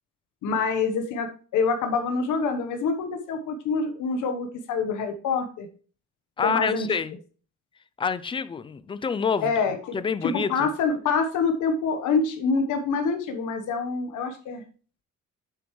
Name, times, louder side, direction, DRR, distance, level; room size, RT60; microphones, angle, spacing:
voice 1, 0.4-5.7 6.4-6.9 9.4-10.0 10.2-14.6, left 4 dB, 80° left, 1.1 m, -26 dB
voice 2, 6.4-7.2 8.0-9.5 9.9-10.7, left 5 dB, 20° left, 0.3 m, -27 dB
7.8 x 6.9 x 3.1 m
cardioid pair, 155°, 30 cm